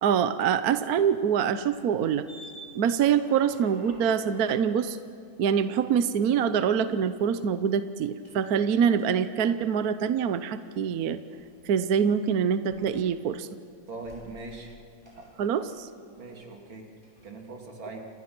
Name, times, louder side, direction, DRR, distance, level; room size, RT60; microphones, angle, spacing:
voice 1, 0.0-2.3 2.7-5.0 5.4-11.2 11.6-13.5 15.4-15.9, right 7 dB, 60° right, 11 dB, 1.2 m, -25 dB
sound 1, 1.4-6.0 6.4-7.5 8.2-8.4 9.0-9.1 9.8-10.3 11.3-12.1 12.6-13.4 13.7-14.7 15.0-16.7 17.0-17.3, right 1 dB, 10° right, 6.5 m, -52 dB
voice 2, 13.9-14.8 15.1-15.3 16.2-16.9 17.2-18.0, right 3 dB, 80° right, 1 dB, 3.7 m, -41 dB
29.5 x 27.0 x 6.1 m, 2.3 s
omnidirectional pair, 2.1 m